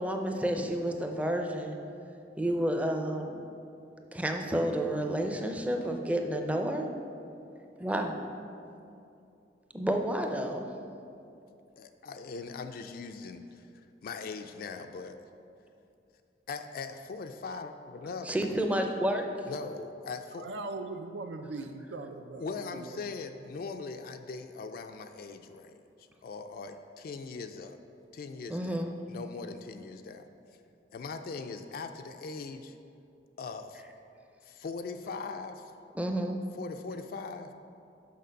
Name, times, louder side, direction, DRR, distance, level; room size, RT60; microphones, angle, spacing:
voice 1, 0.0-1.8 2.4-3.4 4.1-6.9 7.8-8.2 9.7-10.7 18.3-19.3 28.5-28.9 35.9-36.4, right 1 dB, 10° right, 4 dB, 0.5 m, -30 dB
voice 2, 11.8-15.3 16.5-18.3 19.5-20.5 22.3-27.8 28.1-30.3 30.9-32.8 33.4-33.8 34.5-35.7 36.5-37.5, left 4 dB, 55° left, 7 dB, 0.3 m, -40 dB
voice 3, 20.4-23.0, right 3 dB, 80° right, 7 dB, 0.4 m, -40 dB
6.6 x 5.9 x 5.1 m, 2.6 s
head